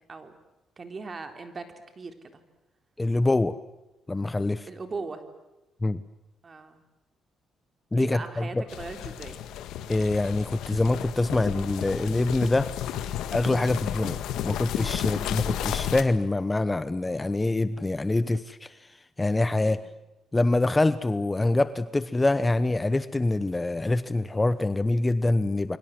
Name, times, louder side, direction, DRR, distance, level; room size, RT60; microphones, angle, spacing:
voice 1, 0.8-2.4 4.7-5.2 6.4-6.8 8.0-9.4 15.0-15.2 19.6-19.9, right 4 dB, 35° right, 7 dB, 3.8 m, -39 dB
voice 2, 3.0-3.5 4.1-4.7 5.8-6.0 7.9-8.6 9.9-12.7 13.3-18.8 19.2-19.8 20.3-25.8, left 2 dB, 15° left, 14 dB, 1.0 m, -25 dB
sound 1, 8.7-16.0, left 10 dB, 85° left, 1.8 m, -33 dB
29.5 x 23.5 x 7.7 m, 1.0 s
cardioid pair, 90°, 0 cm